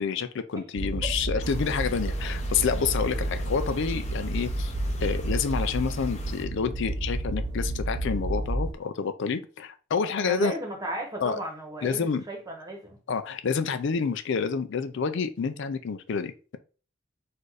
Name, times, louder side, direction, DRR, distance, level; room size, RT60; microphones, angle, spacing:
voice 1, 0.0-4.7 5.0-10.5 11.2-11.4 11.8-12.2 13.1-16.6, left 6 dB, 60° left, 0.4 m, -28 dB
sound 1, 0.8-8.7, right 1 dB, 55° right, 1.0 m, -30 dB
sound 2, 1.4-6.4, left 2 dB, 35° left, 0.9 m, -46 dB
voice 2, 10.2-13.0, right 1 dB, 20° right, 1.2 m, -35 dB
4.3 x 2.6 x 4.7 m
head